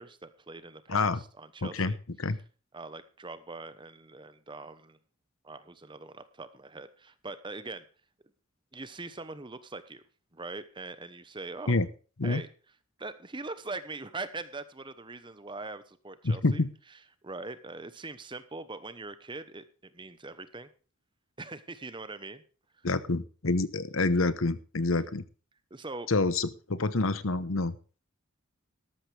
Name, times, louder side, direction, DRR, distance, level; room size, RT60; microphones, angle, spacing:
voice 1, 0.0-2.0 2.7-5.0 5.4-7.8 8.7-10.0 10.3-11.8 12.2-12.5 13.0-16.6 17.2-20.7 21.4-22.4 25.7-26.1, right 3 dB, 25° right, 12 dB, 1.0 m, -42 dB
voice 2, 0.9-1.2 1.6-1.9 2.2-2.4 11.7-11.9 12.2-12.4 16.2-16.7 22.8-25.2 26.1-27.7, left 3 dB, 75° left, 14 dB, 1.0 m, -27 dB
13.0 x 12.5 x 3.4 m, 0.37 s
head